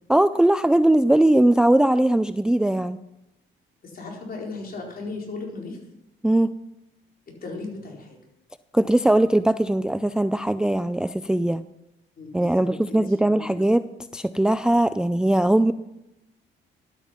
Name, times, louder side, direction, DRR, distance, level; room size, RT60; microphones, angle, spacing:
voice 1, 0.1-3.0 6.2-6.5 8.7-11.6 12.3-13.8 14.1-15.7, right 1 dB, 5° right, 13 dB, 0.4 m, -20 dB
voice 2, 3.8-5.8 7.3-8.2 12.2-13.6, left 3 dB, 50° left, -1 dB, 4.4 m, -37 dB
12.0 x 9.1 x 5.8 m, 0.88 s
cardioid pair, 90°, 20 cm